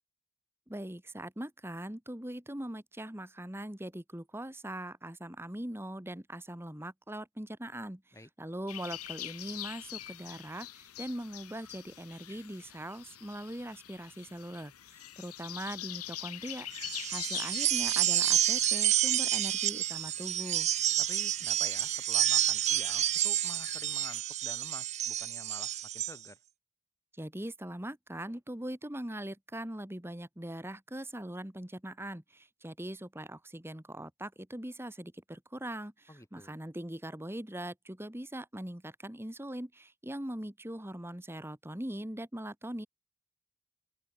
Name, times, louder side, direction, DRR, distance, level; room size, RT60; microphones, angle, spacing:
voice 1, 0.7-8.0 8.4-20.7 27.2-42.9, right 1 dB, 10° right, 1.4 m, -41 dB
sound 1, 8.7-24.2, left 13 dB, 85° left, 2.7 m, -45 dB
sound 2, 16.7-26.2, right 12 dB, 30° right, 0.5 m, -29 dB
voice 2, 21.0-26.4 36.1-36.5, left 1 dB, 15° left, 4.9 m, -49 dB
open air
head